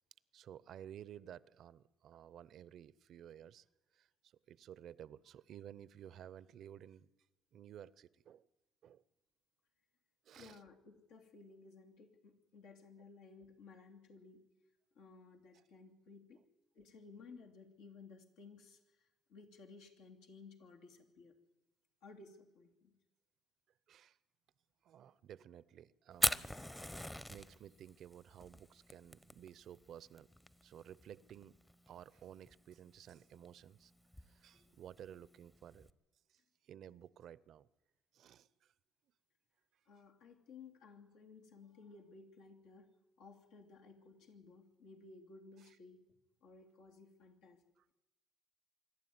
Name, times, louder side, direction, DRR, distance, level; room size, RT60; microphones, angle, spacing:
voice 1, 0.3-3.6 3.9-7.1 7.5-8.5 8.8-9.0 10.2-10.6 15.5-15.6 23.9-24.2 24.8-26.8 27.1-30.3 30.6-31.5 31.9-33.9 34.2-35.9 36.3-36.4 36.6-37.7 38.1-38.7 45.6-45.8 47.8-47.9, right 10 dB, 65° right, 0.6 m, -54 dB
voice 2, 10.3-14.4 14.9-16.4 16.7-21.3 22.0-22.9 33.1-33.2 34.5-34.7 39.9-42.9 43.2-46.0 46.4-47.6, left 4 dB, 90° left, 2.9 m, -57 dB
Fire, 26.1-35.9, left 1 dB, 10° left, 0.8 m, -42 dB
25.5 x 11.5 x 9.5 m
cardioid pair, 95°, 0 cm